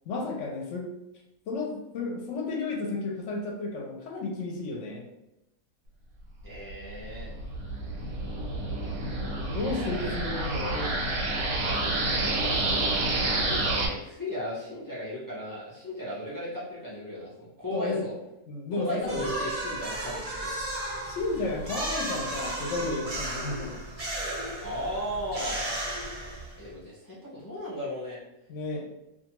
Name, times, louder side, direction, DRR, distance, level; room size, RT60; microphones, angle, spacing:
voice 1, 0.1-0.9 1.5-5.1 9.5-11.0 17.7-18.0 18.5-19.3 21.1-23.8 28.5-28.9, left 3 dB, 65° left, 0 dB, 0.8 m, -32 dB
voice 2, 6.4-7.3 9.7-11.1 11.6-18.1 18.7-20.5 24.6-25.7 26.6-28.2, equal, 30° left, -8 dB, 0.4 m, -36 dB
sound 1, 6.5-13.9, right 2 dB, 85° right, 1.1 m, -29 dB
sound 2, 19.0-26.7, right 1 dB, 50° right, 0.4 m, -34 dB
2.5 x 2.3 x 2.9 m, 0.90 s
omnidirectional pair, 1.5 m